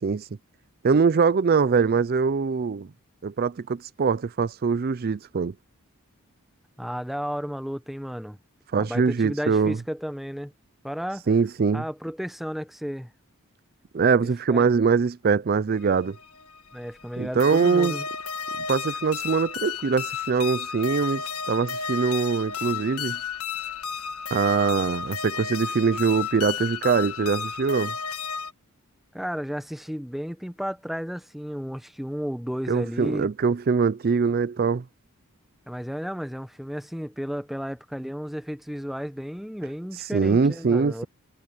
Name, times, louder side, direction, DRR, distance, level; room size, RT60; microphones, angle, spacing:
voice 1, 0.8-2.9 3.2-5.5 8.7-9.8 11.3-11.8 13.9-16.2 17.2-17.9 18.7-23.2 24.3-27.9 32.7-34.8 40.1-41.0, right 5 dB, 45° right, 0.4 m, -23 dB
voice 2, 6.8-8.4 8.7-10.5 10.8-11.3 11.7-13.1 14.5-14.7 16.7-18.1 29.1-33.3 35.7-41.1, equal, ahead, 0.7 m, -33 dB
sound 1, 15.8-28.5, left 6 dB, 85° left, 1.5 m, -33 dB
head